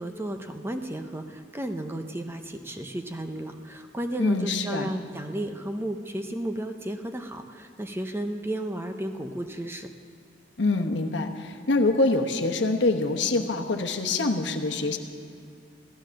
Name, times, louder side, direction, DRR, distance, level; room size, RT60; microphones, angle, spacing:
voice 1, 0.0-9.9, right 1 dB, 15° right, 6 dB, 0.6 m, -33 dB
voice 2, 4.2-4.9 10.6-15.0, left 2 dB, 75° left, 4 dB, 1.1 m, -25 dB
15.0 x 12.5 x 6.4 m, 2.5 s
head